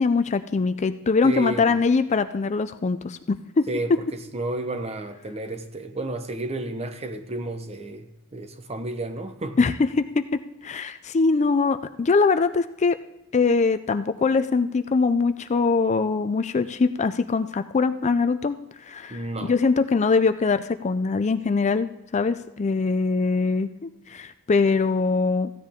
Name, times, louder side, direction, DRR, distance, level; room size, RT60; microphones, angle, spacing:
voice 1, 0.0-3.7 9.6-13.0 13.3-25.5, left 4 dB, 30° left, 10 dB, 0.4 m, -23 dB
voice 2, 1.2-1.8 3.7-9.7 19.1-19.5, right 2 dB, 30° right, 8 dB, 0.9 m, -32 dB
15.0 x 9.8 x 3.6 m, 0.94 s
head